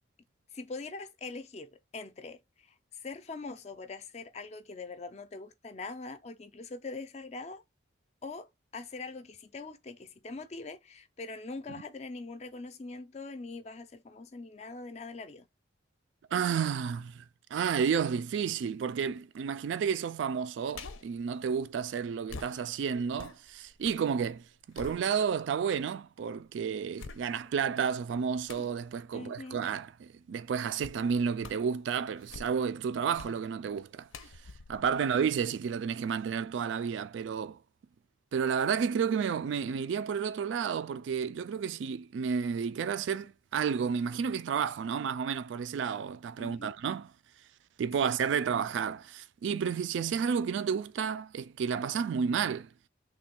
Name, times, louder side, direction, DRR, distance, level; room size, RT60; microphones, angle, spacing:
voice 1, 0.5-7.6 8.2-15.5 29.1-29.6 34.9-35.1 46.4-46.7 48.0-48.1, left 3 dB, 35° left, 0.4 m, -43 dB
voice 2, 16.3-17.2 17.5-24.4 24.7-34.1 34.7-37.6 38.3-47.1 47.8-52.7, right 6 dB, 70° right, 0.3 m, -31 dB
sound 1, 20.7-21.2 22.3-24.1 24.4-25.5 26.1-26.2 27.0-27.7 28.5-28.8 30.8-31.1 31.4-31.8 32.1-32.8 33.2-33.4 34.1-35.8 36.2-36.3, left 4 dB, 85° left, 0.6 m, -47 dB
3.3 x 2.3 x 4.3 m
head